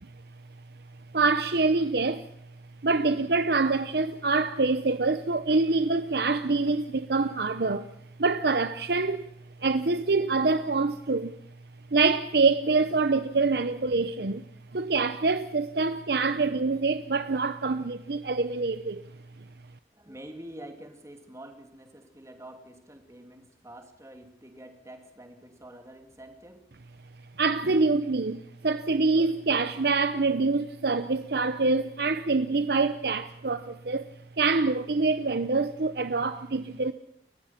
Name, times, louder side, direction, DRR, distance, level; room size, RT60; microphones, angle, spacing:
voice 1, 1.1-2.3 2.8-7.9 8.2-9.3 9.6-11.3 11.9-14.4 14.7-19.0 27.4-34.1 34.4-36.9, right 3 dB, 60° right, 0.8 m, -25 dB
voice 2, 19.9-26.7, right 1 dB, 15° right, 2.7 m, -47 dB
30.0 x 15.0 x 5.9 m
head